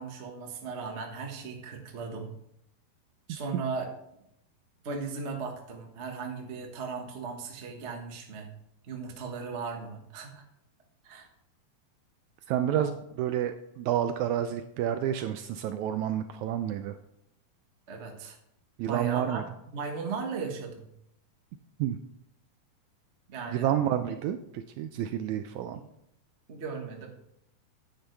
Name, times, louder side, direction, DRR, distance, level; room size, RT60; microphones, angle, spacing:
voice 1, 0.0-2.3 3.3-3.9 4.8-8.5 8.8-10.4 11.0-11.3 12.7-12.9 17.9-18.4 18.9-19.4 19.7-20.9 23.3-23.7 25.7-25.9 26.5-27.1, right 5 dB, 55° right, 2 dB, 0.7 m, -37 dB
voice 2, 12.5-17.0 18.8-19.4 21.8-22.0 23.5-25.8, right 10 dB, 80° right, 9 dB, 1.7 m, -29 dB
10.5 x 9.3 x 3.3 m, 0.76 s
omnidirectional pair, 3.7 m